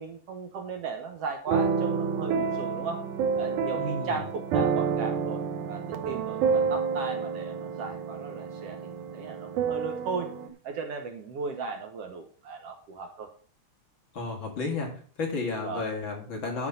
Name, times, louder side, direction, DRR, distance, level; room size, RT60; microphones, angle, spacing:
voice 1, 0.0-3.0 3.4-5.4 5.7-10.3 10.6-13.3 15.6-15.8, right 4 dB, 60° right, 5 dB, 1.9 m, -36 dB
sound 1, 1.5-10.5, right 6 dB, 90° right, 2.5 m, -29 dB
voice 2, 3.8-4.1 14.1-14.9 15.2-16.7, left 3 dB, 45° left, 1 dB, 2.7 m, -32 dB
11.0 x 5.6 x 5.5 m, 0.43 s
omnidirectional pair, 3.4 m